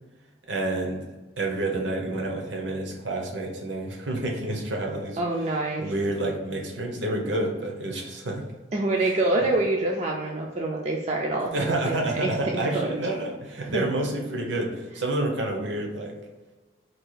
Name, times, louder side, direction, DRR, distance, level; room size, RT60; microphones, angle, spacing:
voice 1, 0.5-1.0 1.4-5.2 5.8-8.5 11.5-16.1, right 1 dB, 75° right, 1 dB, 0.8 m, -29 dB
voice 2, 5.2-5.9 8.7-13.0 13.6-13.9, right 2 dB, 35° right, -1 dB, 0.4 m, -26 dB
4.4 x 2.3 x 4.8 m, 1.2 s
head